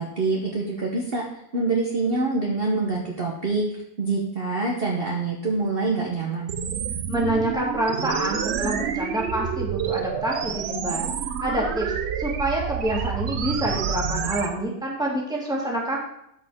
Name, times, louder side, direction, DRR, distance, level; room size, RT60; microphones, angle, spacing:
voice 1, 0.0-3.6 4.0-6.5, right 3 dB, 45° right, -1 dB, 1.1 m, -25 dB
sound 1, 6.5-14.5, right 8 dB, 60° right, 0.7 m, -28 dB
voice 2, 7.1-11.1 11.4-11.9 12.2-16.0, right 1 dB, 5° right, -3 dB, 1.8 m, -27 dB
12.5 x 5.0 x 3.6 m, 0.79 s
omnidirectional pair, 1.6 m